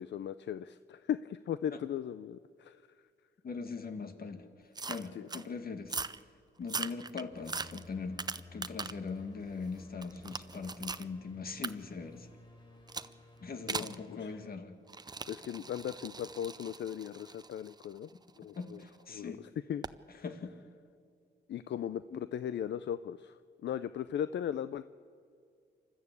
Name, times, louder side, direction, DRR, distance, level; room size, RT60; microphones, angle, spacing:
voice 1, 0.0-2.8 5.2-5.3 13.7-13.8 14.1-14.4 15.3-18.1 18.4-18.8 19.1-19.4 19.7-19.8 20.1-20.2 21.5-23.4 23.6-24.8, left 9 dB, 70° left, 14 dB, 0.5 m, -37 dB
voice 2, 3.4-6.0 6.6-8.2 8.5-12.3 13.4-14.7 18.1-18.2 18.6-19.4 20.2-20.5 22.1-22.2, left 4 dB, 50° left, 8 dB, 1.9 m, -41 dB
sound 1, 4.8-5.5 5.8-6.2 6.6-9.1 9.5-11.1 11.6-11.7 12.9-13.1 13.7-14.0 14.9-18.8 19.8-20.0, right 4 dB, 20° right, 0.6 m, -40 dB
sound 2, 7.3-14.5, left 2 dB, 25° left, 3.6 m, -55 dB
27.5 x 13.0 x 8.4 m, 2.3 s
cardioid pair, 100°, 19 cm